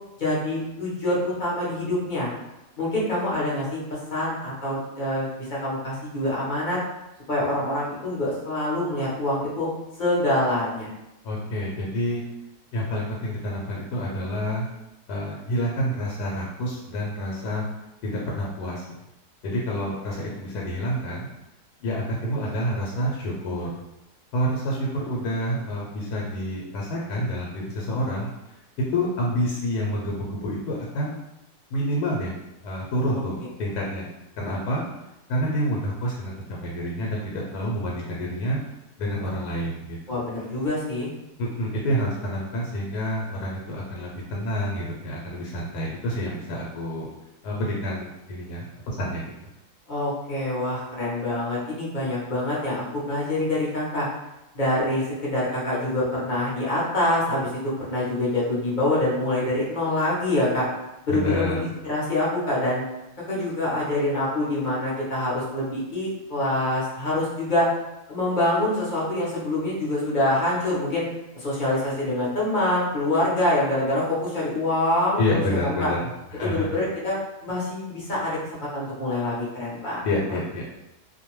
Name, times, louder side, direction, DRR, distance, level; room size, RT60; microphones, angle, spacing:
voice 1, 0.2-2.3 2.8-6.8 7.3-9.7 10.0-10.9 40.1-41.1 49.9-54.1 54.5-60.7 61.1-62.8 63.3-67.7 68.1-71.0 71.3-75.9 76.4-77.2 77.4-78.4 78.7-80.1, left 1 dB, 45° left, -7 dB, 0.7 m, -25 dB
voice 2, 11.2-12.2 12.7-14.7 15.1-17.6 18.0-18.9 19.4-21.3 21.8-23.7 24.3-28.3 28.9-31.2 31.7-32.3 32.6-34.1 34.4-34.8 35.3-38.6 39.0-40.2 41.4-47.1 47.4-49.2 61.1-61.6 75.2-76.0 76.3-76.7 80.0-80.6, equal, 85° left, -3 dB, 1.1 m, -28 dB
2.5 x 2.2 x 3.0 m, 0.93 s
omnidirectional pair, 1.7 m